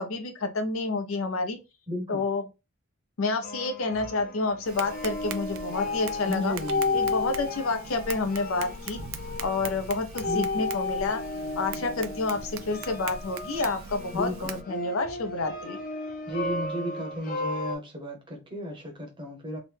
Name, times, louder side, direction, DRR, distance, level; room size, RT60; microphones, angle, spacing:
voice 1, 0.0-1.6 2.1-2.4 3.2-6.5 6.9-9.0 9.4-11.2 11.6-15.8, left 3 dB, 90° left, 0.6 m, -29 dB
voice 2, 1.9-2.2 6.3-7.2 10.3-10.7 14.1-14.5 16.3-19.6, left 1 dB, 25° right, 0.7 m, -34 dB
sound 1, 3.4-17.8, left 3 dB, 40° left, 0.4 m, -34 dB
Tap, 4.6-14.6, right 6 dB, 80° right, 0.4 m, -41 dB
3.0 x 2.1 x 3.3 m
head